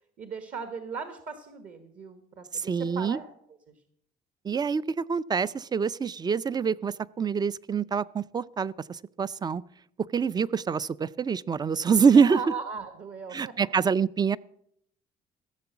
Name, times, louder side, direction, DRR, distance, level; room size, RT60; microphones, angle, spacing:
voice 1, 0.2-3.2 3.7-3.8 12.1-13.7, right 5 dB, 50° right, 8 dB, 1.5 m, -38 dB
voice 2, 2.5-3.2 4.4-9.6 10.1-12.4 13.3-14.4, right 6 dB, 25° right, 19 dB, 0.4 m, -25 dB
15.5 x 6.8 x 7.1 m, 0.71 s
cardioid pair, 110°, 17 cm